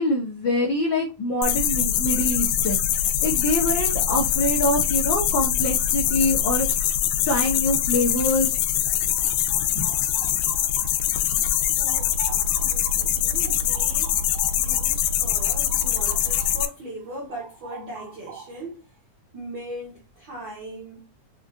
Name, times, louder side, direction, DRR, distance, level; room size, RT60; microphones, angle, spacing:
voice 1, 0.0-6.9 7.2-8.6 9.7-9.9, left 1 dB, 70° left, 1.1 m, -25 dB
sound 1, 1.4-16.7, left 10 dB, 85° left, 2.1 m, -23 dB
sound 2, 8.9-11.2 11.5-16.7 17.0-18.7, right 5 dB, 85° right, 2.3 m, -44 dB
voice 2, 11.8-18.9 19.3-21.1, right 1 dB, 65° right, 1.2 m, -39 dB
5.8 x 2.4 x 2.4 m
omnidirectional pair, 3.5 m